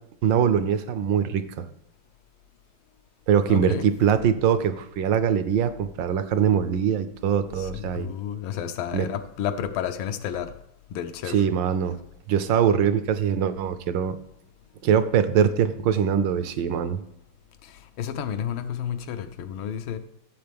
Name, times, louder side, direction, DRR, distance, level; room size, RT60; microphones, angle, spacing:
voice 1, 0.2-1.6 3.3-8.1 8.9-9.1 11.3-11.9 12.3-14.2 14.8-17.0, right 8 dB, 75° right, 1.3 m, -22 dB
voice 2, 3.5-3.9 6.4-6.6 7.5-10.5 10.9-11.5 17.6-20.0, left 9 dB, 85° left, 1.5 m, -31 dB
13.5 x 7.5 x 3.5 m
omnidirectional pair, 2.2 m